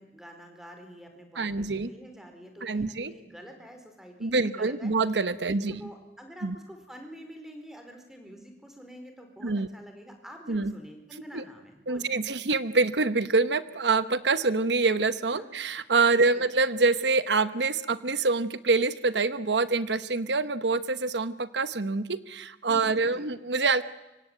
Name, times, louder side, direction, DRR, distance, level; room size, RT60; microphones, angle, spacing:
voice 1, 0.0-4.9 5.5-12.4 15.3-15.5 16.1-16.5 22.7-23.4, equal, 5° right, 5 dB, 4.4 m, -47 dB
voice 2, 1.4-1.9 2.6-3.1 4.2-5.8 6.4-6.5 9.4-9.7 10.5-10.7 11.3-11.4 11.9-23.8, right 3 dB, 85° right, 13 dB, 1.1 m, -26 dB
25.5 x 25.0 x 9.1 m, 1.0 s
head